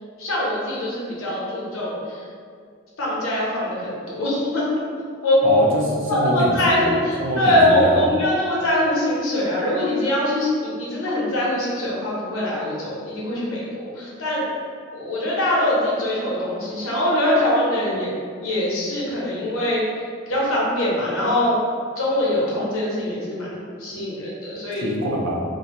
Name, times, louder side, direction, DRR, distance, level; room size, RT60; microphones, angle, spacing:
voice 1, 0.2-2.2 3.0-4.7 5.2-5.6 6.1-14.5 14.9-18.1 18.4-19.8 20.3-21.6 22.0-24.9, left 1 dB, 90° left, -6 dB, 0.8 m, -22 dB
voice 2, 5.4-8.1 24.8-25.5, equal, 70° right, -2 dB, 0.5 m, -24 dB
2.5 x 2.2 x 2.8 m, 2.2 s
head